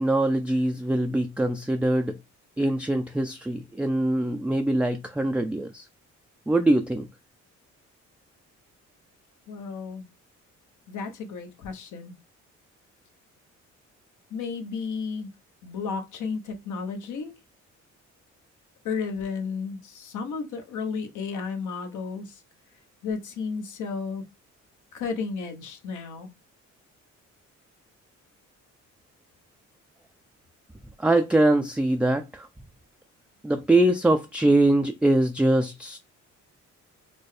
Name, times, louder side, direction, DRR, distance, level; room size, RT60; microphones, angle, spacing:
voice 1, 0.0-2.1 2.6-5.8 6.5-7.1 31.0-32.5 33.4-36.0, right 1 dB, 5° right, 0.3 m, -23 dB
voice 2, 9.5-10.1 10.9-12.2 14.3-15.3 15.6-17.3 18.8-22.4 23.0-24.2 24.9-26.3, left 5 dB, 80° left, 0.9 m, -33 dB
4.3 x 2.1 x 3.2 m
cardioid pair, 90°, 30 cm